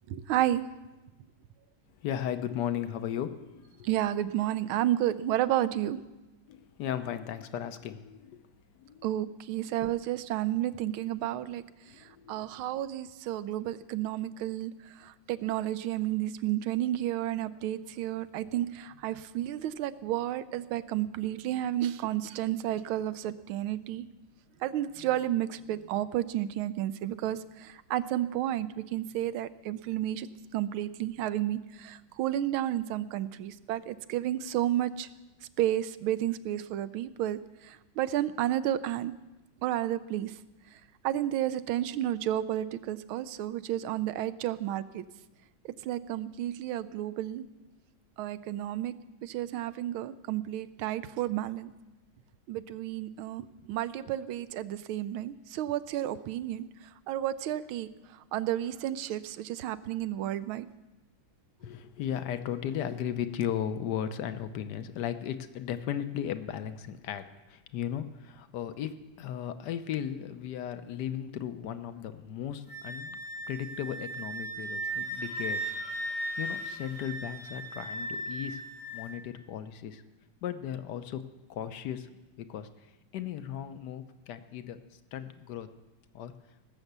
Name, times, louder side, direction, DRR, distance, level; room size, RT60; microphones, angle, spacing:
voice 1, 0.1-0.6 3.8-6.0 9.0-11.6 12.0-24.0 24.6-30.3 30.5-35.1 35.6-39.1 39.6-40.3 41.0-45.0 45.8-47.4 48.2-48.9 49.2-51.7 52.5-56.7 57.1-57.9 58.3-60.7, right 12 dB, 80° right, 15 dB, 1.5 m, -31 dB
voice 2, 2.0-3.9 6.5-8.4 8.8-9.1 11.9-12.5 61.6-73.2 73.5-75.7 76.0-78.6 78.9-80.0 80.4-81.2 81.5-82.1 82.5-85.7 86.1-86.3, left 9 dB, 65° left, 10 dB, 1.2 m, -36 dB
Wind instrument woodwind instrument, 72.7-79.1, right 1 dB, 90° left, 4.6 m, -37 dB
18.5 x 7.1 x 8.0 m, 1.0 s
omnidirectional pair, 2.3 m